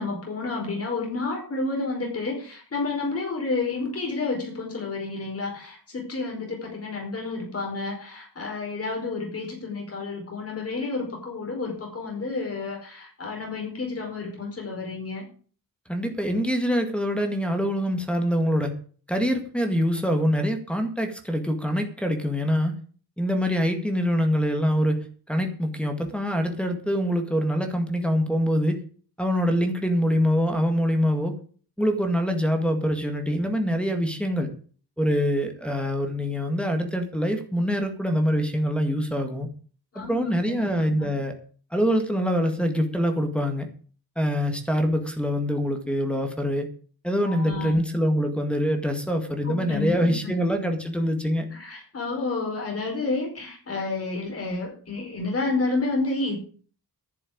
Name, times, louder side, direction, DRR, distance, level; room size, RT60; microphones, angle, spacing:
voice 1, 0.0-15.2 39.9-41.1 47.2-47.8 49.4-50.4 51.5-56.4, left 3 dB, 40° left, -1 dB, 5.0 m, -30 dB
voice 2, 15.9-18.7 19.1-22.8 23.2-28.8 29.2-31.3 31.8-34.5 35.0-39.5 40.0-41.3 41.7-43.7 44.2-46.7 47.0-51.4, equal, 5° left, 2 dB, 1.9 m, -24 dB
11.0 x 7.0 x 8.8 m, 0.43 s
wide cardioid pair, 155°, 38 cm